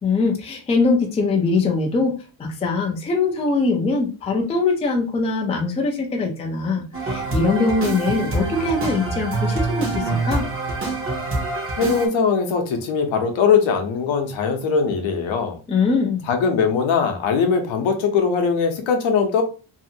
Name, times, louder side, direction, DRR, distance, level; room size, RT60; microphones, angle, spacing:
voice 1, 0.0-10.5 15.7-16.2, left 3 dB, 15° left, 1 dB, 0.4 m, -22 dB
sound 1, 6.9-12.1, right 3 dB, 25° right, 0.7 m, -25 dB
voice 2, 11.8-15.6 16.3-19.4, left 5 dB, 65° left, 5 dB, 0.8 m, -20 dB
2.8 x 2.5 x 2.7 m, 0.34 s
cardioid pair, 140°, 49 cm